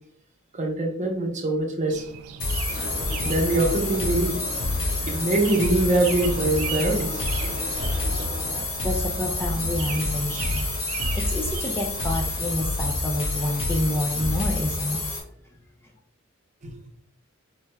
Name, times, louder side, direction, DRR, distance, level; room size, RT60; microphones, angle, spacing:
voice 1, 0.5-2.1 3.2-4.4 5.1-7.3 8.1-8.2 16.6-16.7, right 2 dB, 35° right, 0 dB, 0.7 m, -23 dB
sound 1, 1.9-12.5, right 8 dB, 75° right, 0.3 m, -39 dB
sound 2, 2.4-15.2, left 2 dB, 70° left, 1.0 m, -28 dB
sound 3, 2.7-8.6, left 1 dB, 45° left, 1.2 m, -38 dB
voice 2, 8.8-10.7 11.1-15.0, left 1 dB, 10° left, 0 dB, 0.4 m, -28 dB
4.5 x 3.1 x 2.2 m, 0.66 s
head